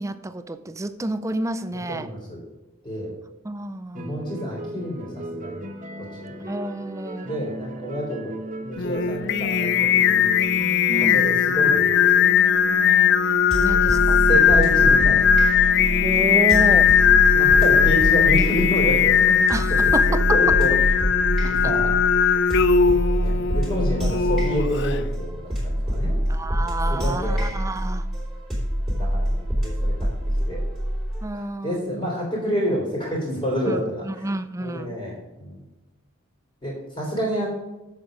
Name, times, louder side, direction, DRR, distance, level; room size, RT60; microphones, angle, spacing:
voice 1, 0.0-2.1 3.4-4.2 6.4-7.3 10.9-11.3 13.6-14.2 16.0-16.9 19.5-20.5 21.4-21.7 26.3-28.1 31.2-32.0 33.7-35.0, right 2 dB, 15° right, 11 dB, 0.4 m, -29 dB
voice 2, 1.7-2.4 2.8-3.1 3.9-5.6 6.0-6.4 7.2-8.3 8.6-10.3 11.1-12.1 14.3-15.2 17.3-19.4 19.7-19.8 20.1-20.7 21.2-22.0 23.1-26.2 26.9-27.4 28.9-29.9 30.2-30.6 31.3-34.2 34.6-35.6 36.6-37.5, equal, 25° left, -5 dB, 3.1 m, -28 dB
sound 1, 3.9-17.2, right 1 dB, 35° right, 0.9 m, -37 dB
Singing, 8.8-25.0, left 7 dB, 55° left, 0.4 m, -19 dB
sound 2, 13.5-31.3, equal, ahead, 3.1 m, -25 dB
7.7 x 7.2 x 5.0 m, 1.0 s
head